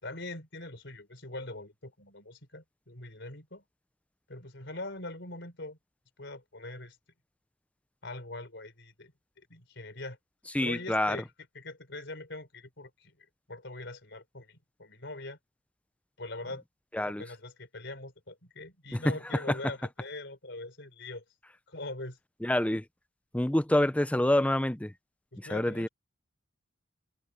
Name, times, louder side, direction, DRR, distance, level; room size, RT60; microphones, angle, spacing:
voice 1, 0.0-3.6 4.3-5.8 6.2-7.0 8.0-10.2 10.6-11.3 11.5-15.4 16.2-16.6 17.0-21.2 21.7-22.2 25.3-25.9, left 2 dB, 60° left, 4.8 m, -42 dB
voice 2, 10.5-11.2 16.9-17.2 18.9-19.0 19.5-19.6 22.4-22.8 23.3-24.9 25.4-25.9, left 1 dB, 5° left, 0.5 m, -27 dB
head